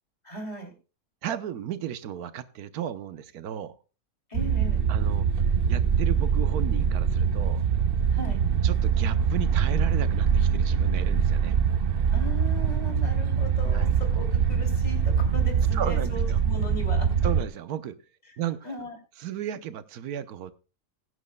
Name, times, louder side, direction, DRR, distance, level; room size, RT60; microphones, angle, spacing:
voice 1, 0.2-0.7 4.3-4.8 8.1-8.4 12.1-17.1 18.6-19.0, left 1 dB, 25° left, 2.9 m, -38 dB
voice 2, 1.2-3.7 4.9-5.3 5.7-7.7 8.6-11.6 13.7-13.9 15.7-16.4 17.2-18.0 18.4-18.8 19.2-20.5, right 10 dB, 80° right, 1.3 m, -34 dB
sound 1, 4.3-17.4, right 7 dB, 55° right, 0.6 m, -24 dB
21.0 x 9.7 x 2.2 m
omnidirectional pair, 1.6 m